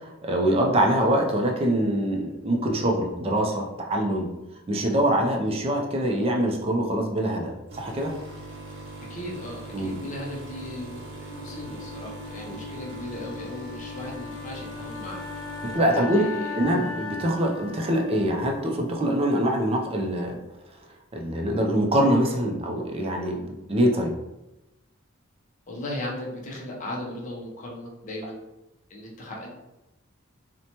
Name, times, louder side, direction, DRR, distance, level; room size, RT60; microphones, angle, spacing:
voice 1, 0.2-4.3 4.7-8.1 9.7-10.0 12.5-12.6 15.6-16.2 16.5-20.4 21.1-24.1, right 1 dB, 25° right, 1 dB, 0.4 m, -24 dB
sound 1, 7.7-16.9 17.3-17.6 18.4-18.5, right 2 dB, 60° right, 0.8 m, -41 dB
voice 2, 9.1-15.2 15.9-16.6 25.7-28.4 28.9-29.5, left 1 dB, 35° left, -3 dB, 0.5 m, -37 dB
Wind instrument woodwind instrument, 11.3-19.3, left 5 dB, 85° left, 0.6 m, -38 dB
2.9 x 2.1 x 2.7 m, 0.96 s
head